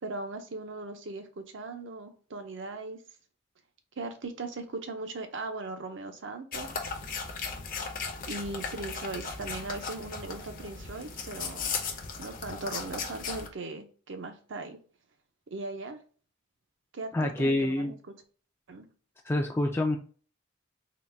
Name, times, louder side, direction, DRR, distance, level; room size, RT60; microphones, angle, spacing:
voice 1, 0.0-3.0 4.0-6.9 8.2-11.7 12.2-14.8 15.5-16.0 16.9-18.0 18.7-18.9, right 3 dB, 70° right, 6 dB, 0.7 m, -39 dB
sound 1, 6.5-13.5, left 5 dB, 45° left, 0.6 m, -37 dB
voice 2, 17.1-17.9 19.3-20.0, left 1 dB, 10° left, 2 dB, 0.3 m, -27 dB
3.9 x 2.2 x 3.3 m, 0.40 s
head